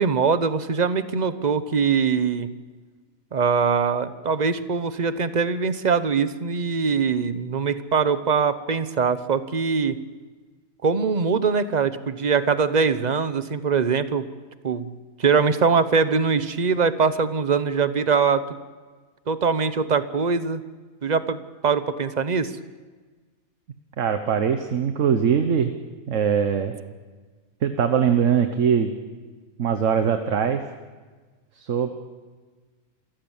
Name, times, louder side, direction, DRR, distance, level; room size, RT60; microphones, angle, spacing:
voice 1, 0.0-2.5 3.3-9.9 10.8-14.3 14.6-14.9 15.2-18.4 19.3-20.6 21.0-22.5, right 5 dB, 35° right, 12 dB, 0.9 m, -22 dB
voice 2, 24.0-25.7 26.1-26.8 27.6-28.9 29.6-30.6 31.5-31.9, right 7 dB, 60° right, 7 dB, 1.4 m, -21 dB
27.5 x 15.0 x 7.2 m, 1.4 s
omnidirectional pair, 1.5 m